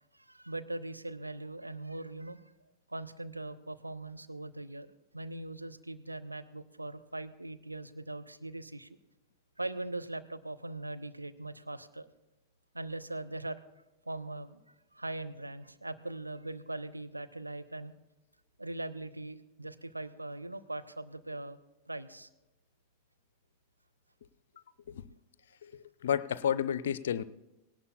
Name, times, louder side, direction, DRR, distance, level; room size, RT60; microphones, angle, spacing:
voice 1, 0.1-2.4 2.9-9.0 9.6-12.1 12.7-13.6 14.1-14.6 14.9-17.9 18.6-21.6 21.9-22.3, right 2 dB, 85° right, 10 dB, 0.6 m, -41 dB
voice 2, 25.6-27.2, left 9 dB, 60° left, 17 dB, 0.4 m, -31 dB
18.5 x 17.5 x 2.2 m, 0.98 s
figure-of-eight pair, 90°, 0 cm